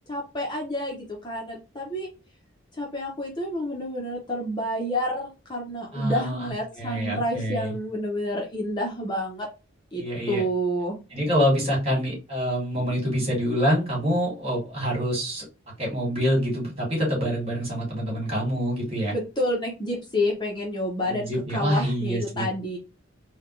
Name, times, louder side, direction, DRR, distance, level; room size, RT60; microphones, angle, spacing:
voice 1, 0.1-2.1 2.8-9.5 9.9-11.0 19.1-22.8, equal, 20° left, -1 dB, 0.8 m, -29 dB
voice 2, 5.9-7.7 9.9-10.4 11.1-15.4 15.8-19.1 21.0-22.5, equal, 30° right, -3 dB, 2.2 m, -26 dB
4.0 x 2.3 x 3.2 m, 0.29 s
head